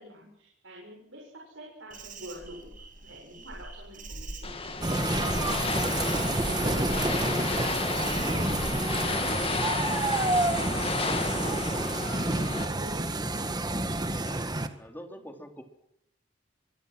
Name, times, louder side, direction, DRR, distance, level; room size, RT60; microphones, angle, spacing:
voice 1, 0.0-4.7 15.1-15.4, equal, 80° right, -1 dB, 7.0 m, -48 dB
Insect, 1.9-10.3, right 1 dB, 45° right, 6.8 m, -43 dB
sound 1, 4.4-12.6, left 4 dB, 30° left, 2.1 m, -32 dB
sound 2, 4.8-14.7, right 2 dB, 20° right, 1.8 m, -29 dB
voice 2, 14.1-14.4 14.8-15.6, equal, 10° left, 4 dB, 3.4 m, -45 dB
25.5 x 23.0 x 6.3 m, 0.78 s
head